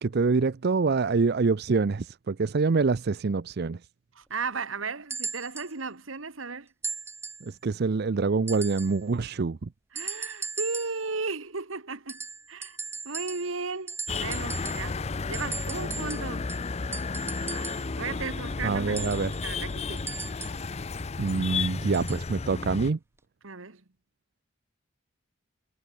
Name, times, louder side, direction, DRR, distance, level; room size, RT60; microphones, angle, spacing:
voice 1, 0.0-3.8 7.4-9.7 18.6-19.3 21.2-23.0, right 4 dB, 50° right, 0.5 m, -26 dB
voice 2, 4.2-6.7 9.9-12.8 13.0-16.5 17.5-20.2 23.4-23.8, right 4 dB, 75° right, 1.8 m, -35 dB
sound 1, 5.1-5.7 6.8-7.5 8.5-9.0 10.0-11.1 12.1-13.6 13.9-15.0 15.3-17.9 19.0-20.7 21.9-22.3 23.2-23.3, right 4 dB, 10° right, 1.6 m, -38 dB
sound 2, 14.1-22.9, left 4 dB, 30° left, 0.5 m, -33 dB
head